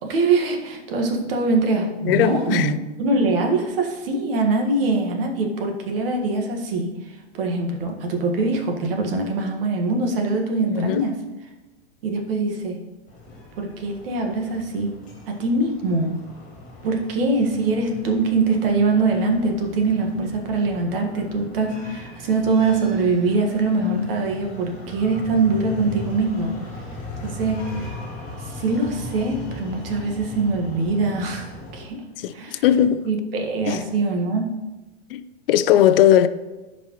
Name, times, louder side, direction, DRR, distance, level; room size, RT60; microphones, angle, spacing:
voice 1, 0.0-2.7 3.0-11.1 12.0-12.8 13.6-15.0 15.3-16.1 16.8-26.6 27.2-27.9 28.4-32.0 32.3-32.6 33.0-34.5, right 3 dB, 60° right, 1.7 m, -23 dB
voice 2, 2.1-2.7 10.7-11.1 32.2-33.1 33.7-33.8 35.1-36.3, left 10 dB, 60° left, 0.5 m, -19 dB
sound 1, 13.1-31.9, left 2 dB, 25° left, 2.5 m, -38 dB
13.5 x 5.1 x 3.1 m
supercardioid pair, 150°, 32 cm